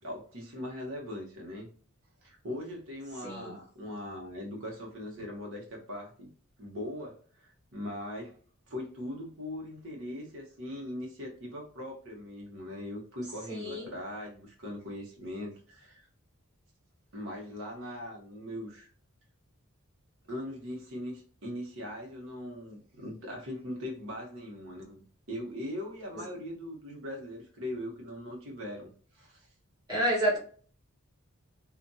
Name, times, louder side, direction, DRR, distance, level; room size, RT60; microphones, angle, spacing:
voice 1, 0.0-1.7 2.2-6.3 6.6-8.4 8.7-16.1 17.1-18.9 20.3-29.5, left 1 dB, 60° right, -1 dB, 1.1 m, -40 dB
voice 2, 3.2-3.6 13.5-13.9 26.1-26.2 29.9-30.4, equal, 20° right, -5 dB, 1.3 m, -29 dB
2.7 x 2.5 x 2.3 m, 0.43 s
head